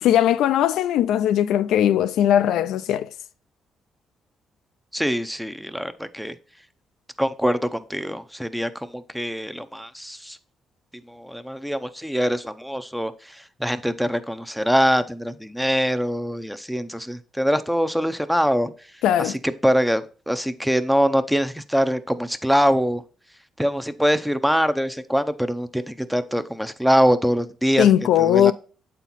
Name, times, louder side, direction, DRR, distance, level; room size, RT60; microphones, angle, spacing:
voice 1, 0.0-3.1 19.0-19.4 27.8-28.5, left 11 dB, 85° left, 0.3 m, -19 dB
voice 2, 4.9-6.3 7.2-10.4 11.1-18.7 19.2-23.0 23.6-27.9 28.2-28.5, equal, ahead, 0.6 m, -23 dB
8.0 x 4.3 x 4.0 m
cardioid pair, 90°, 0 cm